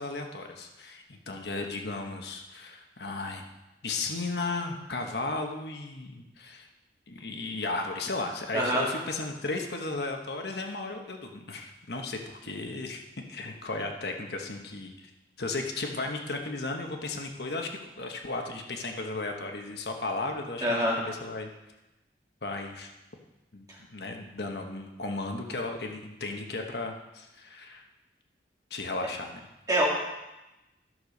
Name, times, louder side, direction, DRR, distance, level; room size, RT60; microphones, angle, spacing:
voice 1, 0.0-3.4 3.8-6.7 7.1-13.0 13.3-14.9 15.4-21.5 22.4-22.9 23.5-23.7 23.9-27.8 28.7-29.4, left 3 dB, 70° left, 3 dB, 1.1 m, -35 dB
voice 2, 8.5-8.9 20.6-20.9 29.7-29.9, right 1 dB, 20° right, -6 dB, 2.8 m, -24 dB
13.0 x 6.6 x 5.3 m, 1.0 s
head